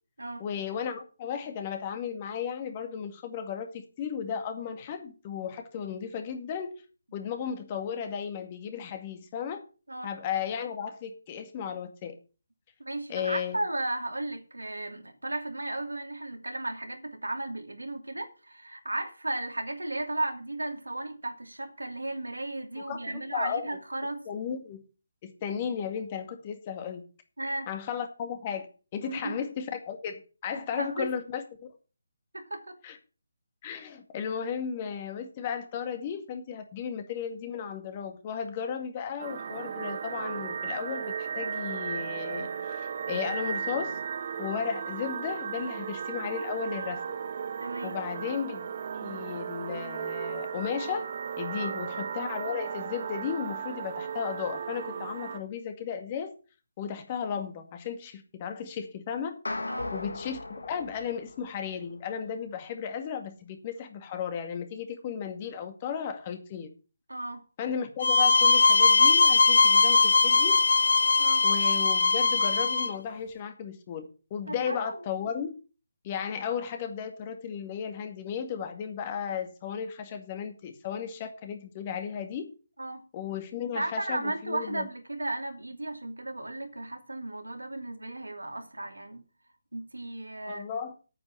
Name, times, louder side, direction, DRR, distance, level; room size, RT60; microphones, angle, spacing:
voice 1, 0.4-6.8 7.1-9.6 10.0-12.2 13.1-13.6 22.9-23.7 24.3-24.8 25.2-27.0 27.7-28.7 28.9-31.7 32.8-33.0 33.6-44.0 44.4-47.2 47.8-51.1 51.4-56.3 56.8-59.4 59.9-66.7 67.6-70.6 71.4-75.5 76.0-82.5 83.1-84.9 90.5-90.9, left 7 dB, 30° left, 2.1 m, -35 dB
voice 2, 12.8-24.2 27.4-27.7 29.0-29.4 30.5-31.1 32.3-32.8 47.6-48.0 51.6-51.8 59.7-59.9 67.1-67.4 71.2-71.5 74.5-75.0 82.8-83.0 83.7-89.2 89.7-90.6, right 2 dB, 90° right, 2.8 m, -35 dB
sound 1, 39.2-55.4, right 7 dB, 45° right, 1.6 m, -35 dB
sound 2, 59.4-61.9, left 2 dB, 80° left, 2.3 m, -37 dB
sound 3, 68.0-72.9, left 4 dB, 65° left, 0.8 m, -21 dB
9.1 x 8.3 x 7.6 m
figure-of-eight pair, 150°, 0 cm